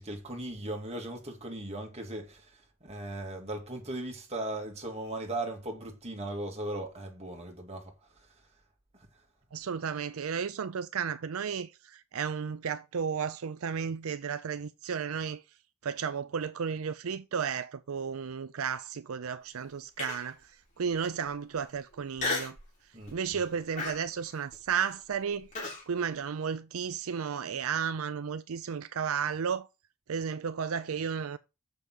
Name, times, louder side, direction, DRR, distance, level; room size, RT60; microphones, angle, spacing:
voice 1, 0.0-8.3 9.5-9.6 22.9-23.4, right 1 dB, 30° right, 2.2 m, -38 dB
voice 2, 9.5-15.4 15.8-20.4 20.8-22.6 23.1-25.5 25.9-29.7 30.1-31.4, right 6 dB, 80° right, 0.5 m, -33 dB
Human voice, 20.0-20.4 21.0-21.1 22.2-22.6 23.1-23.4 23.8-25.8, left 3 dB, 35° left, 4.5 m, -35 dB
6.7 x 5.4 x 6.2 m
head